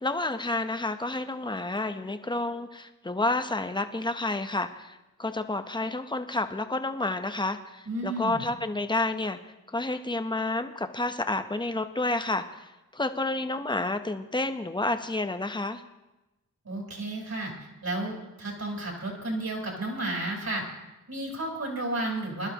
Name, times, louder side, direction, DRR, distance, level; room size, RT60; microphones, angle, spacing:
voice 1, 0.0-15.8, left 2 dB, 15° left, 8 dB, 0.9 m, -30 dB
voice 2, 7.8-8.4 16.6-17.5 17.8-20.6 21.1-22.5, right 2 dB, 50° right, -1 dB, 4.6 m, -32 dB
20.5 x 11.5 x 3.0 m, 1.0 s
cardioid pair, 65°, 34 cm